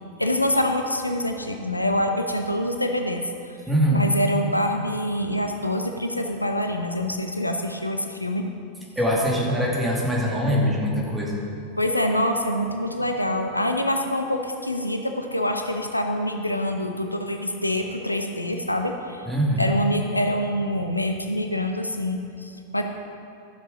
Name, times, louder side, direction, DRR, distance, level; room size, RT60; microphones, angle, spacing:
voice 1, 0.2-3.2 3.9-8.5 11.8-19.2 19.6-22.8, left 1 dB, 85° left, 4 dB, 0.7 m, -25 dB
voice 2, 3.7-4.1 9.0-11.4 19.3-19.7, equal, 5° right, -3 dB, 2.3 m, -23 dB
12.5 x 7.5 x 5.1 m, 2.6 s
figure-of-eight pair, 90°, 0 cm